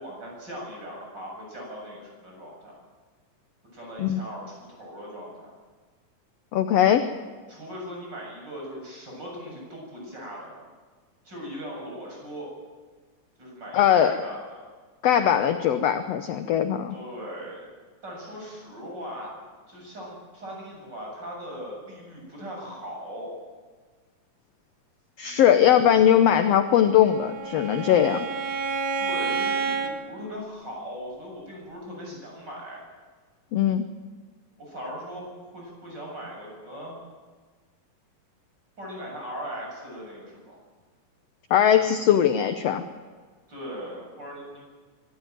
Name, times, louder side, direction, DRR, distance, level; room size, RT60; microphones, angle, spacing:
voice 1, 0.0-2.7 3.7-5.5 7.5-10.5 11.2-12.5 13.4-14.6 16.9-17.6 18.0-19.3 19.7-23.3 25.2-25.5 29.0-32.8 34.6-37.0 38.8-40.6 43.5-44.6, equal, 30° right, -2 dB, 8.2 m, -39 dB
voice 2, 6.5-7.1 13.7-14.1 15.0-17.0 25.2-28.3 33.5-33.9 41.5-42.8, left 10 dB, 70° left, 8 dB, 1.6 m, -20 dB
Bowed string instrument, 26.8-30.0, right 5 dB, 65° right, 2.7 m, -29 dB
24.0 x 13.5 x 9.2 m, 1.4 s
omnidirectional pair, 3.8 m